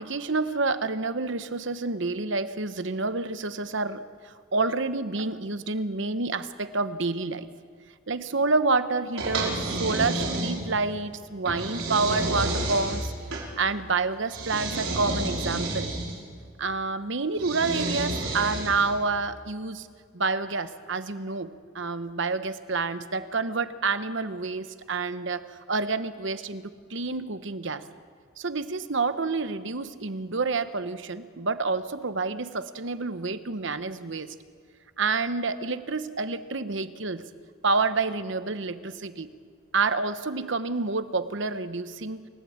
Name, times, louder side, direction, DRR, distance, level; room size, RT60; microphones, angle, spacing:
voice 1, 0.0-7.5 8.1-13.1 13.6-15.9 16.6-19.9 20.1-27.9 28.4-34.3 35.0-37.3 37.6-39.3 39.7-42.3, right 3 dB, 60° right, 12 dB, 1.0 m, -28 dB
sound 1, 9.2-10.9 11.5-13.5 14.3-16.2 17.4-19.0, right 2 dB, 75° right, 5.8 m, -30 dB
29.0 x 15.5 x 8.7 m, 2.1 s
head